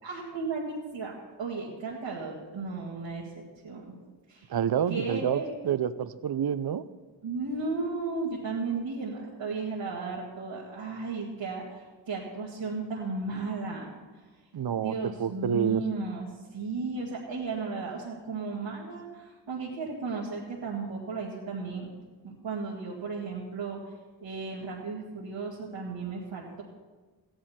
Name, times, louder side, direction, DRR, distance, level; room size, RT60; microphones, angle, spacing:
voice 1, 0.0-1.1 1.4-3.3 3.6-4.5 4.9-5.5 7.2-13.9 14.7-21.9 22.2-23.9 24.2-26.6, right 4 dB, 85° right, -6 dB, 2.1 m, -35 dB
voice 2, 4.5-6.8 14.5-14.9 15.2-15.8, right 8 dB, 55° right, 15 dB, 0.7 m, -28 dB
15.0 x 10.5 x 4.3 m, 1.3 s
cardioid pair, 50°, 44 cm